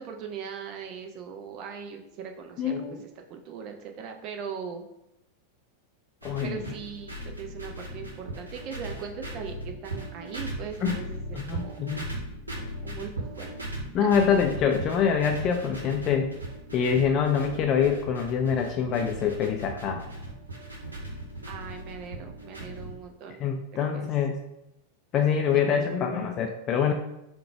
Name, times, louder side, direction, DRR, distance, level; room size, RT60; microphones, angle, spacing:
voice 1, 0.0-2.7 3.3-4.9 6.4-11.9 12.8-13.5 14.0-14.1 21.5-23.5 23.7-24.1 25.5-25.6, right 7 dB, 40° right, 4 dB, 0.4 m, -40 dB
voice 2, 2.6-3.0 6.2-6.8 10.8-11.0 11.3-12.2 13.9-16.3 16.7-20.0 23.4-24.4 25.1-26.9, left 7 dB, 35° left, 3 dB, 0.3 m, -25 dB
sound 1, 6.2-22.9, right 1 dB, 80° right, 0.8 m, -38 dB
3.7 x 2.2 x 4.3 m, 0.86 s
figure-of-eight pair, 90°, 0 cm